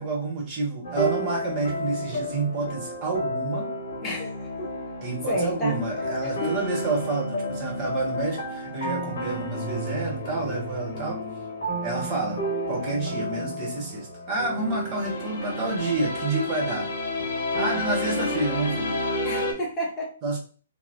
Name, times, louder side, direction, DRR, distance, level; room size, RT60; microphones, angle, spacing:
voice 1, 0.0-3.7 5.0-11.2 11.8-12.4 12.7-16.9 17.6-19.0 20.2-20.4, right 3 dB, 35° right, -2 dB, 1.2 m, -29 dB
sound 1, 0.8-19.5, left 1 dB, 60° left, 0.9 m, -31 dB
voice 2, 4.0-4.7 5.3-6.5 17.7-17.8 18.1-18.2 19.2-20.1, equal, 25° left, -2 dB, 0.7 m, -32 dB
2.9 x 2.1 x 2.5 m, 0.40 s
hypercardioid pair, 135°, 0 cm